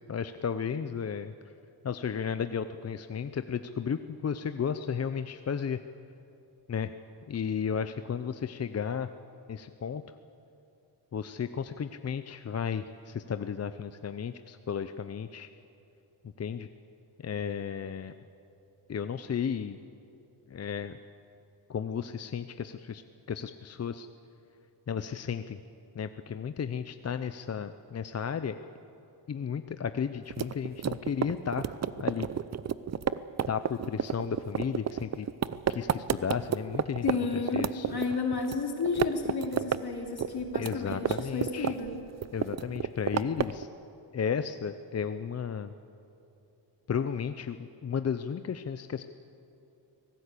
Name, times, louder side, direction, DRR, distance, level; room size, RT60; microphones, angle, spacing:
voice 1, 0.1-1.3 1.8-5.8 6.7-6.9 7.3-9.1 9.5-10.0 11.1-15.5 16.4-16.7 17.2-18.1 18.9-19.8 20.5-21.0 21.7-23.0 23.3-24.1 24.9-25.6 25.9-28.6 29.3-32.3 33.5-35.3 35.7-37.1 37.3-37.9 40.6-41.7 42.3-43.7 44.1-45.7 46.9-49.0, left 7 dB, 35° left, 10 dB, 0.6 m, -33 dB
sound 1, 30.3-37.2 37.5-38.6 38.9-39.8 40.1-41.9 42.2-43.6, right 8 dB, 40° right, 0.6 m, -30 dB
voice 2, 37.0-41.9, left 4 dB, 60° left, 3 dB, 3.0 m, -32 dB
25.0 x 18.0 x 8.3 m, 2.8 s
wide cardioid pair, 130°, 43 cm